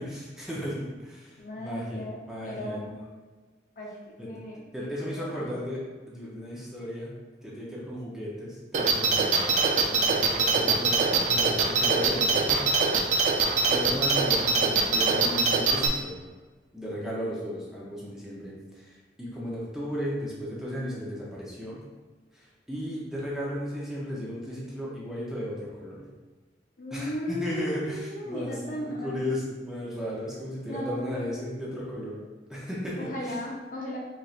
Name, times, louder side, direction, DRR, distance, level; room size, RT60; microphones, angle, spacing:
voice 1, 0.0-2.0 2.3-3.0 4.2-4.3 4.7-5.8 6.1-7.1 7.4-12.7 13.0-13.3 13.7-16.2 16.7-21.9 22.3-26.0 26.9-32.2 32.5-33.4, equal, 5° right, -6 dB, 0.6 m, -35 dB
voice 2, 1.4-3.0 3.8-5.4 26.8-29.4 30.7-31.3 33.0-34.0, left 1 dB, 50° left, -2 dB, 0.6 m, -36 dB
sound 1, 8.7-15.9, right 4 dB, 40° right, 0.3 m, -23 dB
4.1 x 3.1 x 2.4 m, 1.3 s
head